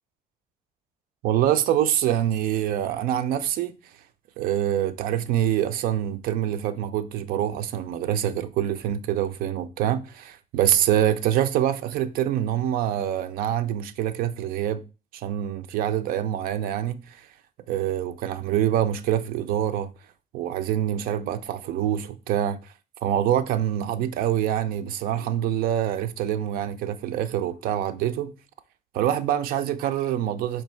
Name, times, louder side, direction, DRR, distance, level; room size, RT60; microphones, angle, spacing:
voice 1, 1.2-3.7 4.4-14.8 15.1-17.3 17.7-19.9 20.3-22.7 23.0-28.3 28.9-30.6, right 11 dB, 70° right, 0.4 m, -25 dB
4.5 x 2.7 x 4.3 m
cardioid pair, 175°, 15 cm